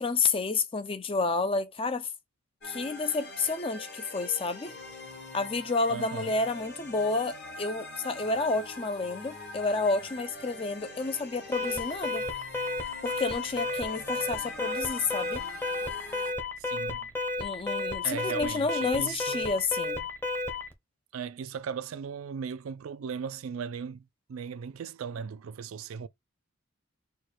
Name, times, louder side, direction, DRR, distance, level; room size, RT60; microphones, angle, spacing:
voice 1, 0.0-2.1 2.6-4.7 5.3-12.2 13.0-15.4 17.4-20.1, left 3 dB, 25° left, 0.4 m, -30 dB
sound 1, 2.6-16.3, left 2 dB, 55° left, 1.9 m, -44 dB
voice 2, 5.9-6.3 16.7-17.1 18.0-19.5 21.1-24.0 24.3-26.1, right 6 dB, 85° right, 0.4 m, -37 dB
Alarm, 11.5-20.7, left 2 dB, 10° left, 0.8 m, -32 dB
4.5 x 2.3 x 4.7 m
head